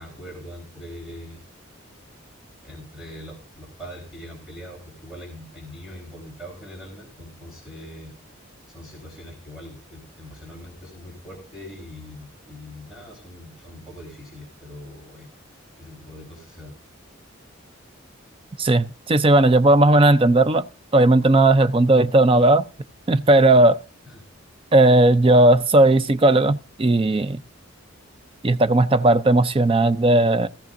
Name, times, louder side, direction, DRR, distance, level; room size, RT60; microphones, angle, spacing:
voice 1, 0.0-1.4 2.6-8.1 8.7-15.3 15.8-16.8 24.1-24.2, equal, 5° right, 3.6 m, -41 dB
voice 2, 18.6-20.6 20.9-22.6 23.1-23.8 24.7-27.4 28.4-30.5, right 2 dB, 25° right, 0.5 m, -16 dB
16.5 x 14.5 x 2.6 m
head